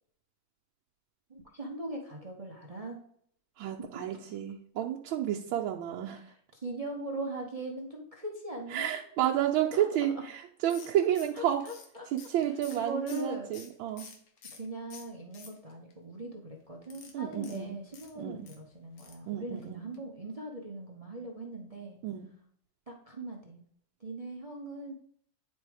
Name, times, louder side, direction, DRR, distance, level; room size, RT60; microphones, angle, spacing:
voice 1, 1.3-3.0 3.8-3.9 6.1-9.0 9.7-9.8 11.3-12.0 12.8-13.5 14.6-22.0 22.9-23.6 24.0-24.9, right 2 dB, 35° right, -1 dB, 0.6 m, -40 dB
voice 2, 3.6-6.2 8.7-11.7 12.1-14.1 17.1-17.8 18.2-18.5 19.3-19.8 22.0-22.3, right 11 dB, 85° right, -1 dB, 1.4 m, -31 dB
sound 1, 10.7-14.7 14.9-15.9 16.8-18.6 19.0-19.3 19.6-19.7 19.9-20.0, left 5 dB, 80° left, 1.9 m, -51 dB
9.6 x 3.4 x 4.8 m, 0.65 s
omnidirectional pair, 2.2 m